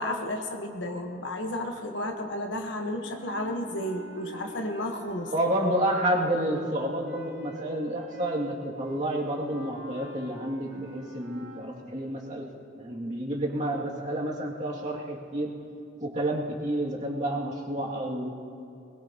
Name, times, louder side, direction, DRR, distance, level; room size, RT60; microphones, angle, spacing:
voice 1, 0.0-5.3, left 1 dB, 70° left, 3 dB, 1.2 m, -32 dB
sound 1, 3.0-11.7, left 1 dB, 80° right, 2.2 m, -46 dB
voice 2, 5.3-12.5 12.7-15.6 16.0-18.3, right 1 dB, 40° right, -3 dB, 2.3 m, -30 dB
21.0 x 21.0 x 2.9 m, 2.7 s
head